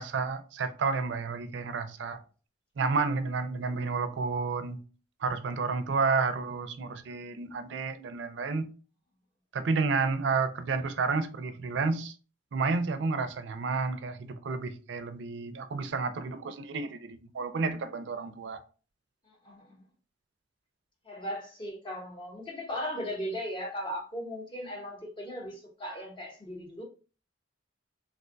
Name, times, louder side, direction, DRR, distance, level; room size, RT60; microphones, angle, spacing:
voice 1, 0.0-2.2 2.8-4.8 5.2-8.7 9.5-12.1 12.5-18.6, right 4 dB, 65° right, 0.4 m, -31 dB
voice 2, 21.1-26.8, equal, 25° left, 0.8 m, -37 dB
3.4 x 2.2 x 2.5 m
head